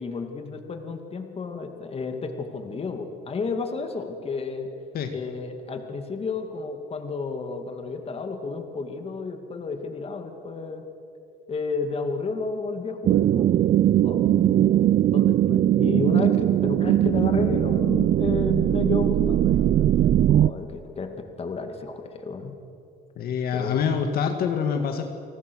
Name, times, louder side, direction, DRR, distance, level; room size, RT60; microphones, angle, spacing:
voice 1, 0.0-4.7 5.1-10.8 11.5-13.5 14.0-19.8 20.3-22.6 23.5-23.9, left 4 dB, 35° left, 6 dB, 2.3 m, -32 dB
sound 1, 13.1-20.5, right 12 dB, 50° right, 0.5 m, -20 dB
voice 2, 23.2-25.0, left 7 dB, 65° left, 5 dB, 1.9 m, -25 dB
29.5 x 19.0 x 6.4 m, 2.6 s
cardioid pair, 110°, 17 cm